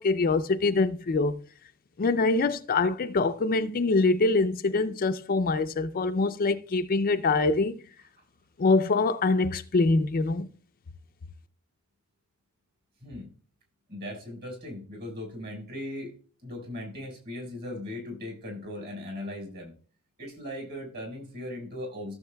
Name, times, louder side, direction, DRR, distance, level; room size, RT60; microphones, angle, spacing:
voice 1, 0.0-1.4 2.0-7.8 8.6-10.5, left 3 dB, 40° left, 0.4 m, -24 dB
voice 2, 13.9-16.1 16.4-19.7 20.2-22.1, left 1 dB, 45° right, 4.2 m, -38 dB
15.0 x 7.2 x 2.3 m
head